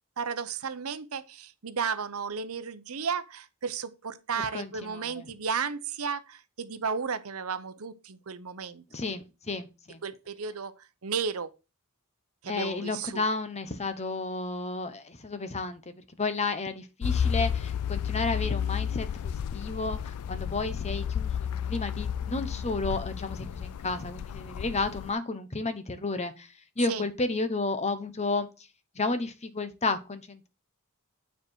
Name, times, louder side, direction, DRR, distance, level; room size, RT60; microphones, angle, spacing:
voice 1, 0.2-9.1 10.0-10.7 11.0-11.5 12.4-13.2 26.9-27.0, right 6 dB, 70° right, 0.8 m, -33 dB
voice 2, 4.5-5.2 8.9-10.0 12.5-15.8 16.2-26.5 26.8-28.5 29.0-30.5, left 3 dB, 30° left, 0.9 m, -32 dB
sound 1, 17.0-25.1, left 8 dB, 80° left, 0.3 m, -32 dB
9.2 x 4.6 x 4.5 m
head